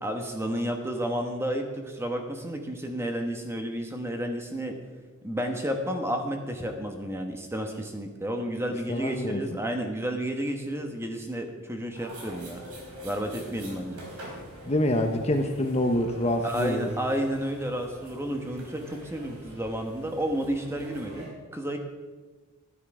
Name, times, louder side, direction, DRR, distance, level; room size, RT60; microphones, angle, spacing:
voice 1, 0.0-4.7 5.2-12.6 13.0-14.0 16.4-21.8, equal, 10° right, 4 dB, 1.2 m, -31 dB
voice 2, 8.9-9.4 14.7-16.9, left 1 dB, 30° left, 5 dB, 0.8 m, -26 dB
sound 1, 11.9-21.3, equal, 90° right, 4.1 m, -45 dB
12.5 x 11.0 x 4.9 m, 1.3 s
head